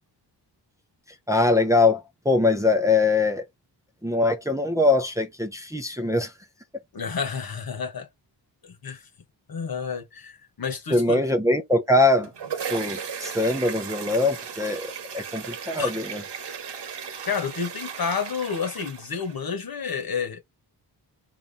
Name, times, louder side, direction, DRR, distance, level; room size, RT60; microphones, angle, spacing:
voice 1, 1.3-3.5 4.0-6.3 10.9-12.3 12.7-16.2, left 2 dB, 5° right, 0.8 m, -22 dB
voice 2, 6.9-8.1 8.6-9.1 9.5-11.2 15.8-15.9 17.3-20.4, left 6 dB, 55° left, 1.3 m, -30 dB
sound 1, 12.0-19.5, right 7 dB, 65° right, 1.3 m, -36 dB
4.2 x 2.8 x 3.5 m
wide cardioid pair, 120°, 44 cm